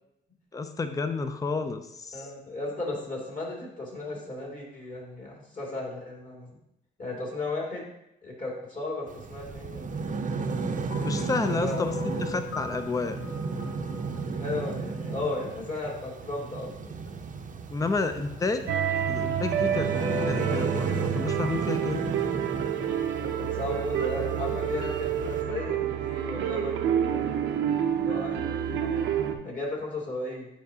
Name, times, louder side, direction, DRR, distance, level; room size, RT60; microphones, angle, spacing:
voice 1, 0.5-2.3 11.0-11.9 12.2-13.2 17.7-18.7 19.1-19.9 20.3-22.1, left 3 dB, 15° left, 8 dB, 0.5 m, -30 dB
voice 2, 2.1-6.5 7.0-7.9 8.2-10.1 11.5-11.9 14.4-17.2 23.2-27.5 27.9-29.1 29.4-30.5, left 2 dB, 40° left, -1 dB, 2.4 m, -35 dB
sound 1, 9.1-25.4, right 4 dB, 40° right, 0.7 m, -34 dB
sound 2, 10.9-15.2, left 5 dB, 80° left, 1.1 m, -41 dB
sound 3, 18.7-29.3, right 8 dB, 80° right, 0.7 m, -28 dB
9.0 x 4.7 x 2.8 m, 0.82 s
cardioid pair, 90°, 20 cm